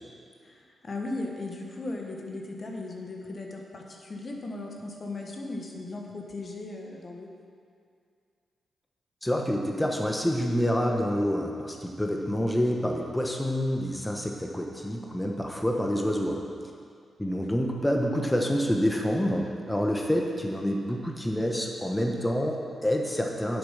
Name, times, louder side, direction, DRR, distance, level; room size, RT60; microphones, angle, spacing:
voice 1, 0.4-7.3, left 2 dB, 50° left, 1 dB, 1.3 m, -37 dB
voice 2, 9.2-16.4 17.2-23.6, equal, 10° left, 1 dB, 1.1 m, -27 dB
7.7 x 7.1 x 5.7 m, 2.3 s
supercardioid pair, 45°, 0 cm